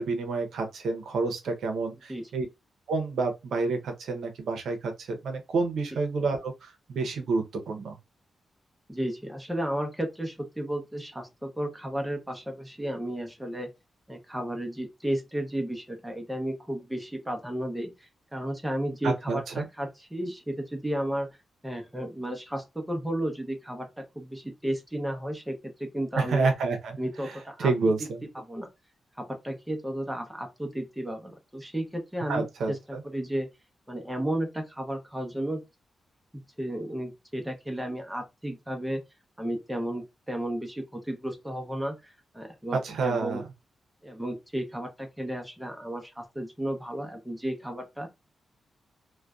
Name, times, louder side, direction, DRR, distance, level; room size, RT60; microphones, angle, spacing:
voice 1, 0.0-2.5 2.9-8.0 19.0-19.7 26.2-27.0 27.2-28.2 32.3-33.0 42.7-43.4, right 3 dB, 85° right, 0.6 m, -29 dB
voice 2, 8.9-13.7 14.1-21.3 21.6-26.5 27.0-27.7 28.3-28.7 29.2-33.5 33.9-35.6 36.6-39.0 39.4-43.4 44.0-48.1, right 1 dB, 5° right, 0.6 m, -33 dB
2.5 x 2.1 x 2.3 m
wide cardioid pair, 125°, 0 cm